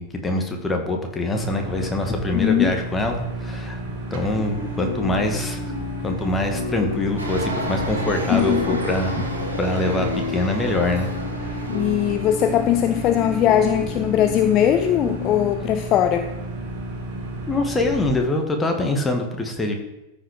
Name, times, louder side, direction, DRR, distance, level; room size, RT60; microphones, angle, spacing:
voice 1, 0.0-3.8 4.1-5.6 6.0-9.2 9.6-11.1 11.4-11.7 17.5-19.7, left 2 dB, 15° left, 3 dB, 1.8 m, -24 dB
sound 1, 1.3-18.1, right 1 dB, 50° right, 2.2 m, -32 dB
voice 2, 2.3-2.7 8.3-8.8 11.7-16.3, left 10 dB, 35° left, 8 dB, 0.6 m, -20 dB
sound 2, 4.3-15.5, left 4 dB, 60° left, 0.9 m, -33 dB
sound 3, 7.2-13.5, right 1 dB, 75° right, 1.9 m, -32 dB
13.5 x 5.6 x 5.1 m, 0.96 s
figure-of-eight pair, 90°, 0 cm